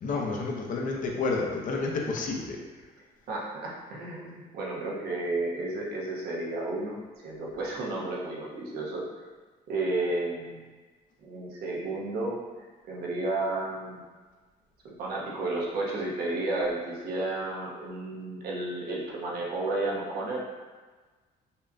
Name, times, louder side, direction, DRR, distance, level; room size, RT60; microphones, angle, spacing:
voice 1, 0.0-2.6, left 3 dB, 50° left, 0 dB, 0.7 m, -30 dB
voice 2, 3.3-7.0 7.2-9.1 9.7-10.6 11.2-12.5 12.9-14.0 14.8-20.4, right 2 dB, 70° right, -3 dB, 1.0 m, -32 dB
5.4 x 2.2 x 2.6 m, 1.4 s
cardioid pair, 110°, 17 cm